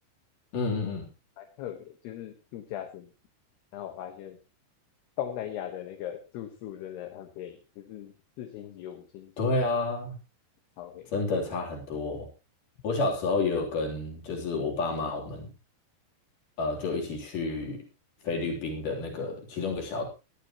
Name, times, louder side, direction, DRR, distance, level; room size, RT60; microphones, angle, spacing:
voice 1, 0.5-1.1 9.4-10.1 11.1-12.3 12.8-15.5 16.6-17.8 18.2-20.1, left 3 dB, 50° left, 1 dB, 4.8 m, -30 dB
voice 2, 1.4-3.1 3.7-4.4 5.2-9.3 10.8-11.1, left 11 dB, 70° left, 5 dB, 3.2 m, -39 dB
18.5 x 12.0 x 3.0 m, 0.29 s
omnidirectional pair, 5.1 m